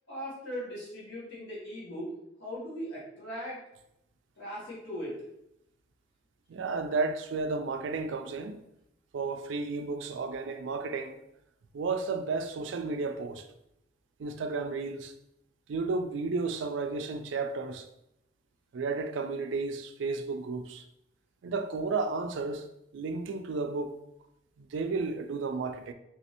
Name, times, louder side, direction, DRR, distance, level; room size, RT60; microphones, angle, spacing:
voice 1, 0.1-2.1 2.4-3.6 4.4-5.1, equal, 70° left, 1.5 m, -39 dB
voice 2, 6.5-8.6 9.1-11.2 11.7-13.5 14.2-15.1 15.7-17.9 18.7-20.8 21.4-22.7 22.9-24.0 24.6-25.9, right 4 dB, 80° right, 0.4 m, -32 dB
3.3 x 3.1 x 2.8 m
head